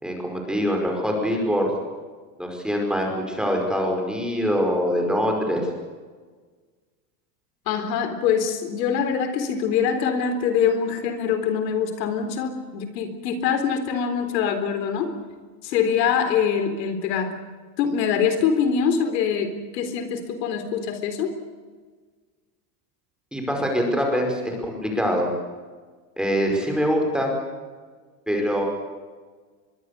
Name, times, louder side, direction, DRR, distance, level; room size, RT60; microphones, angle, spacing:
voice 1, 0.0-1.7 2.4-5.7 23.3-25.3 26.2-27.3 28.3-28.7, equal, ahead, 1 dB, 5.2 m, -24 dB
voice 2, 7.7-15.1 15.6-17.3 17.8-21.3, left 7 dB, 80° left, 8 dB, 4.0 m, -24 dB
24.0 x 23.0 x 6.8 m, 1.4 s
supercardioid pair, 150°, 49 cm